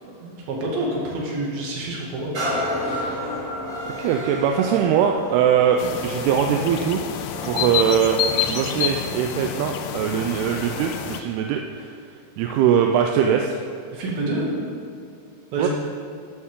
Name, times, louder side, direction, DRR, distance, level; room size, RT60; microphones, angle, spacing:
voice 1, 0.0-2.3 2.8-3.2 13.9-14.6 15.5-15.7, right 2 dB, 70° right, -3 dB, 3.9 m, -28 dB
sound 1, 2.3-9.9 10.5-10.6, equal, 25° right, 3.4 m, -32 dB
voice 2, 4.0-8.2 8.5-11.9 12.4-13.6 15.6-15.7, right 8 dB, 85° right, 3 dB, 2.6 m, -21 dB
sound 2, 5.8-11.2, left 9 dB, 80° left, 2.1 m, -28 dB
13.0 x 11.5 x 3.7 m, 2.4 s
omnidirectional pair, 4.5 m